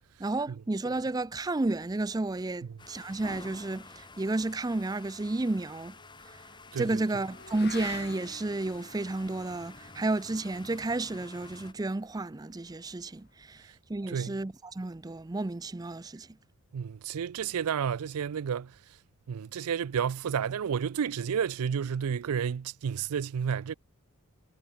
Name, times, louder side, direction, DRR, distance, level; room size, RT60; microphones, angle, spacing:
voice 1, 0.2-6.0 6.8-16.3, right 2 dB, 15° right, 0.4 m, -32 dB
sound 1, 2.8-11.7, left 3 dB, 20° left, 4.8 m, -50 dB
Motorcycle / Accelerating revving vroom, 5.0-13.5, left 5 dB, 45° left, 5.2 m, -51 dB
voice 2, 6.7-7.0 14.1-14.4 16.7-18.7 19.3-23.7, right 7 dB, 85° right, 0.4 m, -31 dB
head